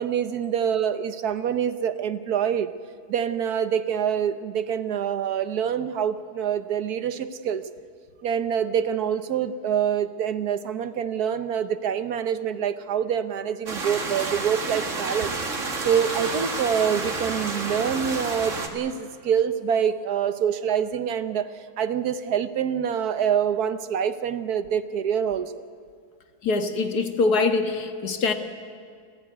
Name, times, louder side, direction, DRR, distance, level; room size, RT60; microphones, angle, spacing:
voice 1, 0.0-2.7 3.1-7.6 8.2-15.3 15.8-21.5 21.8-25.6, right 8 dB, 75° right, 12 dB, 1.5 m, -26 dB
sound 1, 13.7-18.7, right 3 dB, 50° right, 2.3 m, -30 dB
voice 2, 26.4-28.3, left 3 dB, 80° left, 7 dB, 2.0 m, -23 dB
28.0 x 15.5 x 9.4 m, 2.1 s
omnidirectional pair, 1.6 m